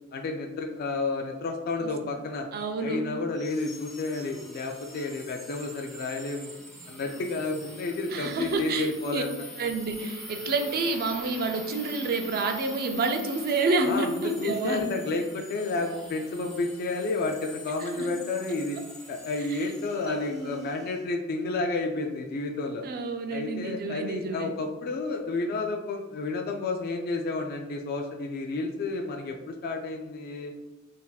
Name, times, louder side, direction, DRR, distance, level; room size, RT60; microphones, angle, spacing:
voice 1, 0.1-2.5 2.8-6.5 6.9-9.4 13.8-18.8 19.1-22.8 23.3-30.5, left 3 dB, 45° left, 3 dB, 0.3 m, -31 dB
voice 2, 2.5-3.1 8.1-9.2 9.6-14.8 17.8-18.1 19.5-19.7 20.0-20.7 22.8-24.5, right 3 dB, 45° right, 5 dB, 0.4 m, -29 dB
sound 1, 3.3-21.0, equal, ahead, 0.7 m, -45 dB
4.0 x 2.6 x 2.3 m, 1.1 s
head